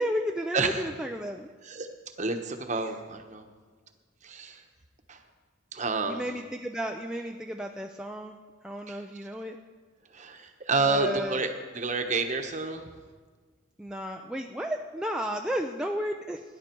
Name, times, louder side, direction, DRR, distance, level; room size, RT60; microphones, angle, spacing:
voice 1, 0.0-1.5 6.1-8.4 8.6-9.6 10.9-11.4 13.8-16.4, equal, 5° right, 2 dB, 0.4 m, -33 dB
voice 2, 0.5-0.8 1.6-1.9 2.2-3.4 4.2-4.6 5.1-5.2 5.7-6.2 8.9-9.0 10.1-12.9, right 3 dB, 35° right, 6 dB, 1.1 m, -29 dB
18.0 x 10.5 x 4.5 m, 1.5 s
head